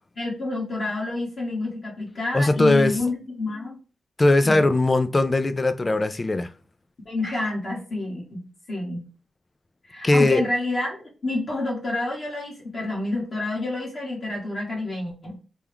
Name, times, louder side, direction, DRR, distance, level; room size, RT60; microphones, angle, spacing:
voice 1, 0.2-3.8 4.4-4.7 7.1-9.0 9.8-15.4, left 2 dB, 50° left, 1.8 m, -29 dB
voice 2, 2.3-3.0 4.2-6.5 10.0-10.4, left 2 dB, 25° left, 0.4 m, -19 dB
5.9 x 2.3 x 3.5 m
wide cardioid pair, 115°, 0 cm